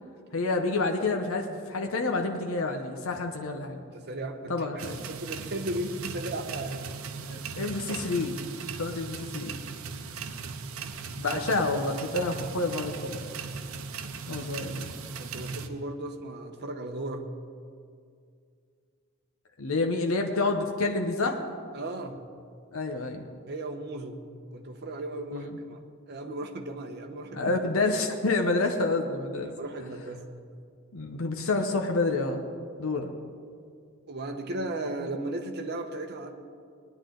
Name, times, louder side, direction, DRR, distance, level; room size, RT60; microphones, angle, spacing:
voice 1, 0.3-3.8 4.5-5.0 7.3-8.4 8.8-9.5 11.2-13.2 14.3-14.9 19.6-21.4 22.7-23.3 25.3-25.5 27.3-29.5 30.9-32.4 32.8-33.1, left 3 dB, 75° left, 4 dB, 0.9 m, -28 dB
voice 2, 3.9-6.9 11.2-11.4 15.2-17.3 21.7-22.2 23.5-24.2 24.5-25.8 26.1-27.5 29.4-30.2 34.1-36.4, right 1 dB, 55° right, 5 dB, 1.0 m, -36 dB
sound 1, 4.8-15.7, right 5 dB, 90° right, 0.8 m, -38 dB
19.5 x 10.5 x 3.9 m, 2.3 s
head